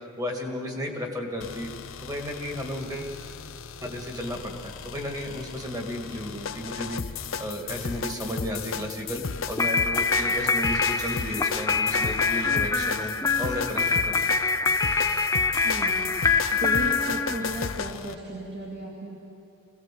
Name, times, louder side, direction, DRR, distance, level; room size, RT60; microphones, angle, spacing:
voice 1, 0.0-1.7 2.0-3.2 3.8-7.0 7.4-13.1 13.4-14.2, equal, 15° right, 2 dB, 2.1 m, -33 dB
sound 1, 1.4-18.2, left 5 dB, 65° left, 0.7 m, -35 dB
sound 2, 9.6-17.9, left 4 dB, 15° left, 0.5 m, -25 dB
voice 2, 15.6-16.0 16.5-19.2, right 1 dB, 50° right, -4 dB, 2.5 m, -35 dB
23.0 x 17.5 x 7.7 m, 2.6 s
head